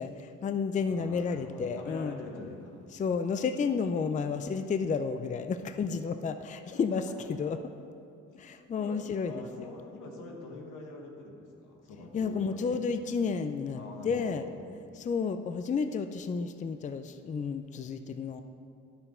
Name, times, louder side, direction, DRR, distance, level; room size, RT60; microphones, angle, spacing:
voice 1, 0.0-2.2 2.9-7.8 8.4-9.7 12.1-14.4 14.9-18.4, left 5 dB, 25° left, 9 dB, 0.4 m, -31 dB
voice 2, 0.8-2.8 5.6-5.7 6.7-7.0 7.4-7.5 8.3-8.4 8.7-9.0 9.2-12.9 13.7-14.5, left 3 dB, 90° left, 1 dB, 1.4 m, -45 dB
9.7 x 6.9 x 4.3 m, 2.5 s
cardioid pair, 90°, 30 cm